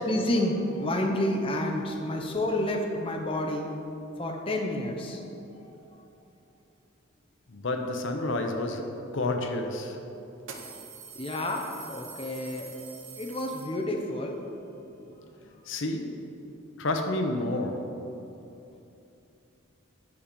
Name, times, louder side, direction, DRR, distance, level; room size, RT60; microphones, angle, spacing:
voice 1, 0.1-3.7 4.2-5.2 5.6-5.7 11.1-12.6 13.2-14.4 15.0-15.1, left 1 dB, 25° left, 1 dB, 0.7 m, -29 dB
voice 2, 7.5-10.0 15.7-16.2 16.8-17.9, left 2 dB, 65° left, 4 dB, 0.7 m, -30 dB
sound 1, 9.3-9.4 10.4-14.2, right 6 dB, 75° right, 0.9 m, -45 dB
9.9 x 5.0 x 5.1 m, 2.9 s
head